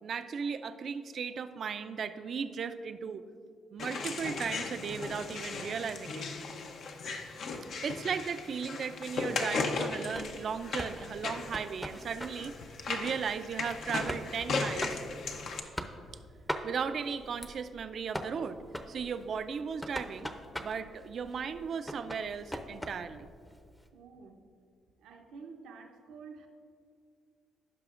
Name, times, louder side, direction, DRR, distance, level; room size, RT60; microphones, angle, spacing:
voice 1, 0.0-3.2 3.7-6.3 7.8-12.6 12.9-15.0 16.6-18.6 18.9-20.3 20.6-23.3, right 6 dB, 55° right, 11 dB, 0.4 m, -36 dB
sound 1, 3.8-15.6, left 4 dB, 65° left, 0.7 m, -37 dB
sound 2, 10.1-23.9, equal, 5° left, 0.6 m, -43 dB
voice 2, 23.9-24.4 25.0-26.5, right 5 dB, 85° right, 3 dB, 0.8 m, -49 dB
15.0 x 5.7 x 2.5 m, 2.3 s
cardioid pair, 90°, 0 cm